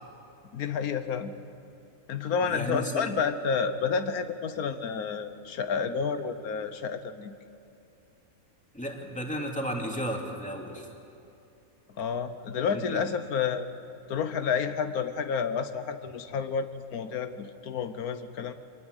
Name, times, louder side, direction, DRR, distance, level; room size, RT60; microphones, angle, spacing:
voice 1, 0.5-1.3 2.1-7.3 12.0-13.7 14.1-18.5, left 6 dB, 90° left, 9 dB, 1.5 m, -30 dB
voice 2, 2.4-3.1 8.7-10.9 12.7-13.0, equal, 5° left, 0 dB, 2.7 m, -34 dB
24.5 x 19.0 x 8.1 m, 2.8 s
omnidirectional pair, 1.5 m